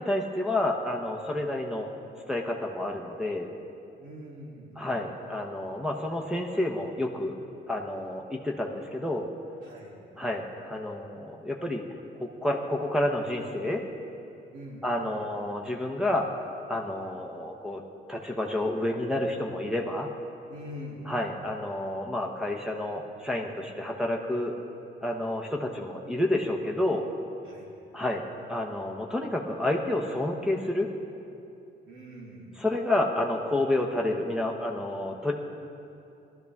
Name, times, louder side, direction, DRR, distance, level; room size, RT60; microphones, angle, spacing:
voice 1, 0.0-1.9 2.3-3.5 4.8-7.3 7.7-9.3 10.2-11.8 12.2-13.8 14.8-16.3 16.7-17.8 18.1-20.1 21.1-24.5 25.0-27.1 27.9-28.2 28.5-30.9 32.6-35.3, left 1 dB, 5° right, -1 dB, 1.0 m, -29 dB
voice 2, 4.0-4.8 9.6-10.0 14.5-15.1 20.5-21.5 27.4-27.7 31.9-32.5, equal, 85° right, -3 dB, 2.8 m, -43 dB
18.0 x 12.5 x 3.6 m, 2.7 s
cardioid pair, 90°, 20 cm